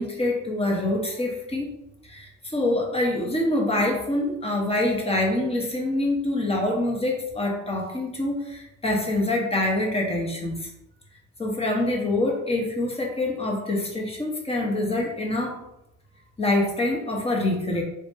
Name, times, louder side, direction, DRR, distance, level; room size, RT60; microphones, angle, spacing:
voice 1, 0.0-1.7 2.0-10.7 11.4-15.6 16.4-17.8, left 1 dB, 20° left, 0 dB, 1.1 m, -25 dB
3.3 x 3.0 x 3.0 m, 0.85 s
cardioid pair, 80°, 30 cm